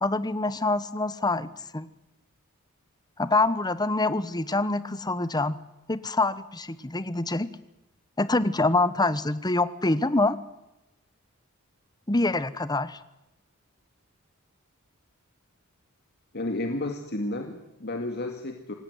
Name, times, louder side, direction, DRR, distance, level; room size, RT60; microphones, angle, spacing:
voice 1, 0.0-1.9 3.2-5.6 5.9-7.5 8.2-10.4 12.1-13.0, left 2 dB, 20° left, 15 dB, 1.1 m, -25 dB
voice 2, 16.3-18.7, left 2 dB, 50° left, 4 dB, 2.2 m, -32 dB
27.0 x 17.0 x 9.5 m, 0.93 s
head